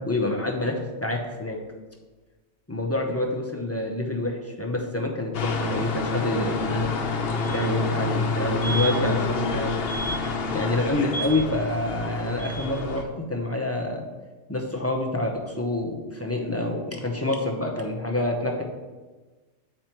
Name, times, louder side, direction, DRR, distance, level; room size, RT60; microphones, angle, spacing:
voice 1, 0.0-1.6 2.7-6.9 7.5-9.7 10.5-14.0 14.5-18.6, left 2 dB, 15° left, 0 dB, 0.6 m, -27 dB
sound 1, 5.3-13.0, left 3 dB, 55° left, 0.8 m, -27 dB
7.2 x 4.4 x 4.5 m, 1.3 s
omnidirectional pair, 1.3 m